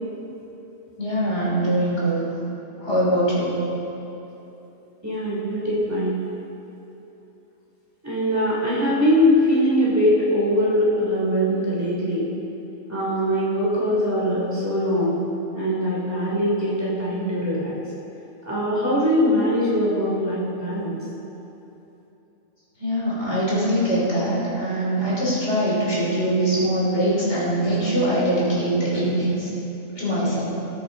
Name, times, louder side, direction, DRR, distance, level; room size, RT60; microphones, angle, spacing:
voice 1, 1.0-2.2 2.8-3.6 22.8-29.5 29.9-30.5, right 1 dB, 50° left, -6 dB, 3.3 m, -22 dB
voice 2, 5.0-6.2 8.0-12.3 12.9-15.2 15.5-17.7 18.5-21.0, equal, 10° right, -8 dB, 3.0 m, -22 dB
19.0 x 8.7 x 4.0 m, 3.0 s
omnidirectional pair, 1.6 m